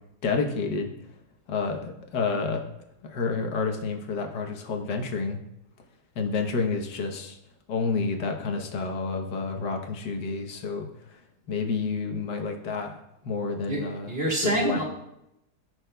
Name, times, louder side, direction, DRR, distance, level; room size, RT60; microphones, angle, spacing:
voice 1, 0.2-0.9 1.5-2.6 3.0-5.4 6.1-7.4 7.7-11.2 11.5-13.0 13.2-14.1 14.4-14.8, left 4 dB, 90° left, 3 dB, 1.6 m, -29 dB
voice 2, 13.7-14.8, right 1 dB, 35° right, -3 dB, 2.1 m, -27 dB
16.0 x 6.0 x 2.2 m, 0.83 s
omnidirectional pair, 1.7 m